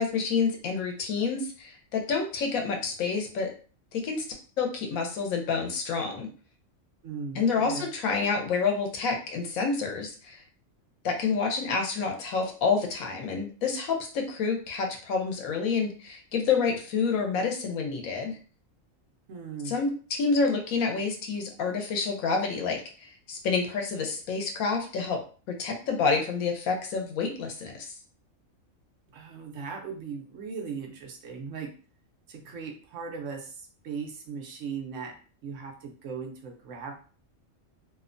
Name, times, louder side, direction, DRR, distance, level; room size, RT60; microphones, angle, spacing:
voice 1, 0.0-3.5 3.9-4.2 4.6-6.3 7.3-10.4 11.0-18.4 19.7-25.2 25.5-27.9, left 5 dB, 90° left, 3 dB, 1.1 m, -28 dB
voice 2, 7.0-7.9 19.3-19.8 29.1-31.7 32.3-35.2 35.4-36.9, right 5 dB, 70° right, 2 dB, 0.9 m, -38 dB
2.8 x 2.1 x 2.5 m, 0.39 s
omnidirectional pair, 1.4 m